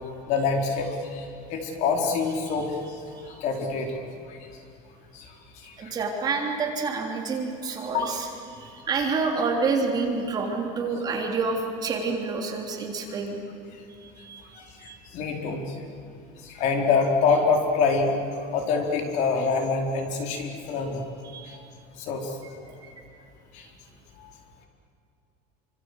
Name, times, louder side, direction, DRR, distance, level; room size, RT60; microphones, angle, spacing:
voice 1, 0.3-4.4 5.1-5.9 7.9-8.1 14.6-15.8 16.4-21.1 21.5-21.6 22.0-22.4 23.5-23.7 24.2-24.3, left 4 dB, 45° left, 2 dB, 4.3 m, -26 dB
voice 2, 5.8-13.4 14.0-15.0 21.2-21.5 22.7-22.9, right 4 dB, 25° right, 1 dB, 3.5 m, -29 dB
28.5 x 25.5 x 8.2 m, 2.7 s
cardioid pair, 170°, 16 cm